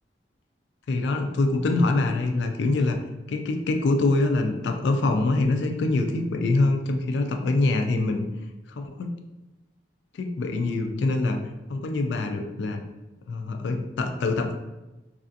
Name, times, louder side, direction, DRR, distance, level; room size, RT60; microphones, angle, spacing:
voice 1, 0.9-3.0 3.3-8.2 8.8-9.1 10.2-12.8 13.3-14.5, left 2 dB, 70° left, 4 dB, 0.3 m, -24 dB
3.2 x 2.5 x 2.6 m, 1.0 s
head